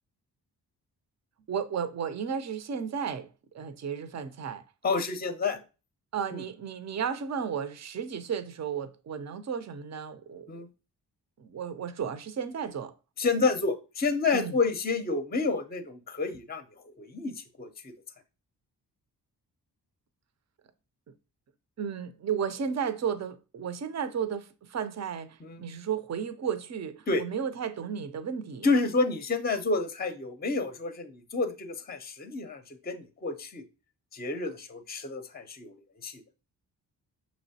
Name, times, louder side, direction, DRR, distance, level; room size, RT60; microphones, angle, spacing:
voice 1, 1.5-3.3 3.5-4.6 6.1-10.5 11.4-12.9 14.3-14.5 21.8-28.7, right 7 dB, 40° right, 0.6 m, -33 dB
voice 2, 4.8-5.6 6.3-6.4 10.5-10.7 13.2-17.9 25.4-25.6 27.1-27.3 28.6-33.6 34.1-35.7 36.0-36.2, left 3 dB, 20° left, 0.6 m, -29 dB
5.5 x 3.1 x 2.7 m
cardioid pair, 45°, 43 cm